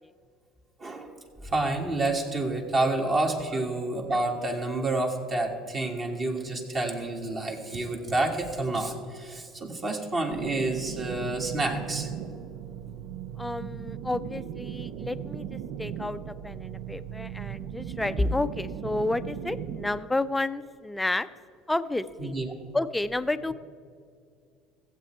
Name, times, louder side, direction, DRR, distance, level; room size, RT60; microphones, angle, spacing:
voice 1, 0.8-1.1 1.4-12.1 22.2-22.5, right 2 dB, 35° right, 1 dB, 1.7 m, -29 dB
sound 1, 10.3-20.0, right 9 dB, 65° right, 0.4 m, -38 dB
voice 2, 13.4-21.3 21.7-22.3 22.7-23.5, left 2 dB, 10° left, 14 dB, 0.5 m, -30 dB
15.5 x 7.6 x 4.5 m, 2.4 s
hypercardioid pair, 80°, 0 cm